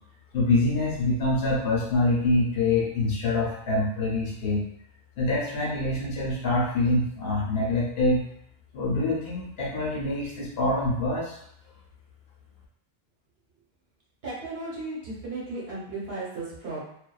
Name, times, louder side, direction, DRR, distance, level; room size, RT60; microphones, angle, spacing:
voice 1, 0.3-4.6 5.2-8.2 8.7-11.4, left 2 dB, 70° left, -5 dB, 0.9 m, -25 dB
voice 2, 14.2-16.8, right 2 dB, 70° right, -7 dB, 1.1 m, -35 dB
2.4 x 2.3 x 2.2 m, 0.74 s
omnidirectional pair, 1.1 m